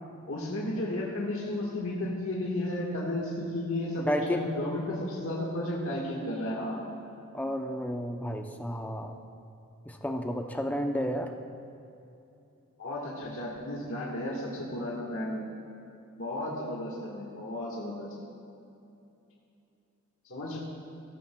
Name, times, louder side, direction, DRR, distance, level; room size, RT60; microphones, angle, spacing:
voice 1, 0.3-6.8 12.8-15.4 16.2-18.1 20.3-20.6, left 1 dB, 65° left, -4 dB, 1.5 m, -33 dB
voice 2, 4.0-4.5 7.3-9.2 9.9-11.3, equal, 5° left, 4 dB, 0.5 m, -31 dB
15.0 x 13.5 x 2.2 m, 2.7 s
head